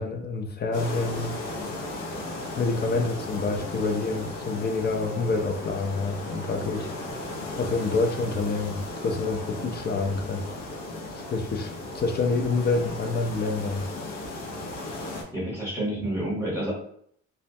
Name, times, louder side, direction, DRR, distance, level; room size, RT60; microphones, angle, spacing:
voice 1, 0.0-1.4 2.6-6.9 7.6-10.4 11.3-13.9, left 3 dB, 35° left, 4 dB, 0.4 m, -27 dB
sound 1, 0.7-15.2, left 2 dB, 80° left, 0.6 m, -36 dB
voice 2, 15.3-16.7, right 1 dB, 5° right, -6 dB, 0.9 m, -29 dB
2.2 x 2.1 x 2.6 m, 0.65 s
cardioid pair, 90°, 30 cm